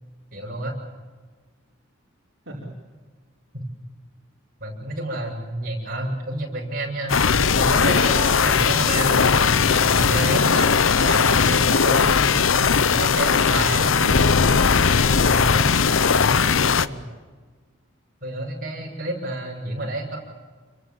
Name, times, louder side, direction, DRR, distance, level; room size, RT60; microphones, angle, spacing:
voice 1, 0.3-0.8 4.6-7.2 7.5-13.9 15.2-15.5 18.2-20.2, right 1 dB, 45° right, -1 dB, 8.0 m, -29 dB
sound 1, 7.1-16.9, left 5 dB, 80° left, 0.8 m, -18 dB
voice 2, 13.8-14.4 15.1-17.1, right 1 dB, 65° right, -3 dB, 5.0 m, -36 dB
29.5 x 23.5 x 7.4 m, 1.4 s
head